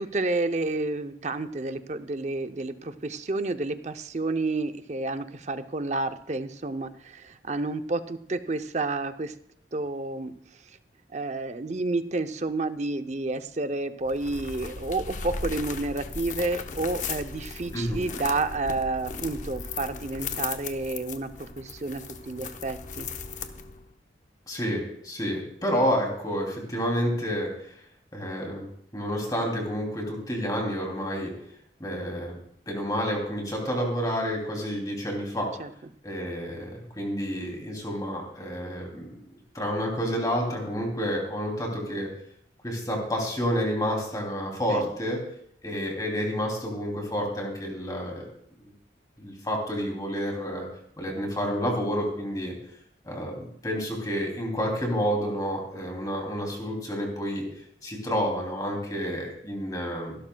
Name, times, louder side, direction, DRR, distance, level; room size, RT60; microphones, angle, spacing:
voice 1, 0.0-9.3 9.7-10.8 11.1-23.1 35.6-35.7 44.7-44.9, right 2 dB, 40° right, 10 dB, 0.6 m, -30 dB
sound 1, 14.0-23.9, left 4 dB, 45° left, 0.8 m, -37 dB
voice 2, 24.5-27.7 28.1-28.6 28.9-31.3 31.8-32.4 32.7-35.5 36.0-39.2 39.5-42.1 42.6-45.2 45.6-48.3 48.6-48.7 49.2-50.7 51.0-52.5 53.0-57.4 57.8-60.2, equal, 20° left, 0 dB, 2.8 m, -29 dB
24.0 x 12.0 x 2.3 m, 0.67 s
head